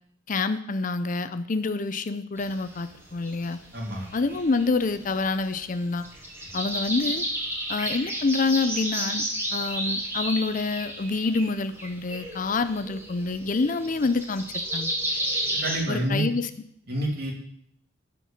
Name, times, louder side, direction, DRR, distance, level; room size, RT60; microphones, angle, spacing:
voice 1, 0.3-3.6 4.1-6.0 6.5-7.2 7.7-9.2 9.5-14.9 15.9-16.5, left 3 dB, 45° left, 11 dB, 0.5 m, -27 dB
sound 1, 2.4-15.8, right 1 dB, 15° right, 2.2 m, -32 dB
voice 2, 3.7-4.1 15.5-16.2 16.9-17.3, right 1 dB, 55° right, -1 dB, 2.7 m, -28 dB
12.0 x 4.6 x 7.2 m, 0.69 s
head